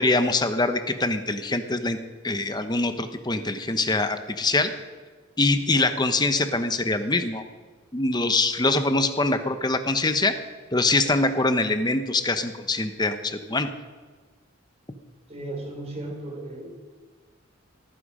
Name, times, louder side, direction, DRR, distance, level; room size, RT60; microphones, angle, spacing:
voice 1, 0.0-2.0 2.2-4.7 5.4-7.4 7.9-10.3 10.7-13.7, left 2 dB, 20° left, 9 dB, 1.1 m, -24 dB
voice 2, 15.3-16.7, right 2 dB, 30° right, 0 dB, 4.2 m, -35 dB
17.5 x 15.0 x 5.0 m, 1.4 s
head